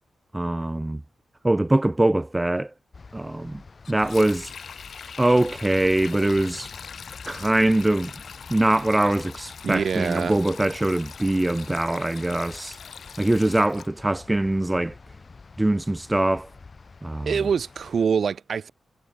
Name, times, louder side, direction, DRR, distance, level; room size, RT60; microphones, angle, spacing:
voice 1, 0.3-1.0 1.4-2.7 3.1-3.6 3.9-4.5 5.2-6.7 7.3-8.1 8.5-12.8 13.2-14.9 15.6-16.5 17.0-17.3, right 1 dB, 15° right, 0.4 m, -23 dB
sound 1, 2.9-18.1, left 4 dB, 40° left, 5.4 m, -47 dB
Sink (filling or washing), 3.8-13.9, left 6 dB, 65° left, 6.4 m, -42 dB
voice 2, 9.6-10.4 17.3-18.7, right 6 dB, 65° right, 2.3 m, -25 dB
wide cardioid pair, 105°, 0 cm